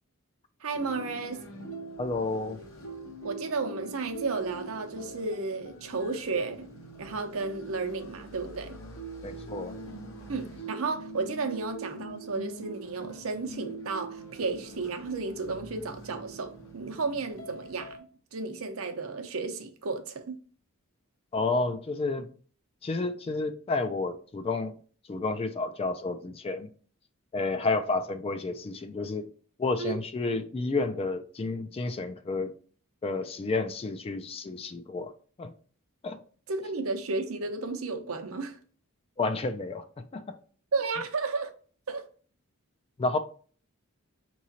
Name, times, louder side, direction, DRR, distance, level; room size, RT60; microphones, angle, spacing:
voice 1, 0.6-1.4 3.2-6.7 7.0-8.8 10.3-18.0 18.3-20.4 29.8-30.0 36.5-38.6 40.7-41.5 41.9-42.0, right 3 dB, 70° right, 0.7 m, -33 dB
sound 1, 0.7-18.0, right 2 dB, 65° left, 0.9 m, -43 dB
voice 2, 2.0-2.6 9.2-9.8 21.3-22.3 22.8-24.7 25.1-26.7 27.3-29.3 29.6-32.5 33.0-35.1 35.4-35.5 36.0-36.2 39.2-39.8 40.1-40.4 43.0-43.2, left 3 dB, 25° left, 0.3 m, -30 dB
4.7 x 3.1 x 2.7 m
head